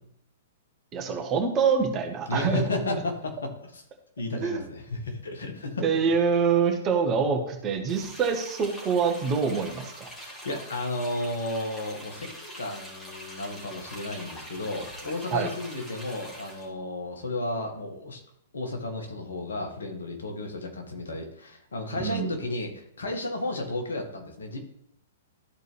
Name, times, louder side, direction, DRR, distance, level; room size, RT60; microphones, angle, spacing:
voice 1, 0.9-2.6 4.3-4.6 5.8-10.1 15.3-15.5 22.0-22.4, right 6 dB, 25° right, 3 dB, 1.4 m, -25 dB
voice 2, 2.3-3.8 4.2-5.8 10.2-18.2 18.5-24.6, left 2 dB, 70° left, 3 dB, 1.8 m, -33 dB
sound 1, 7.9-16.7, equal, 15° left, 2.3 m, -44 dB
13.0 x 4.5 x 3.4 m, 0.71 s
figure-of-eight pair, 110°, 0 cm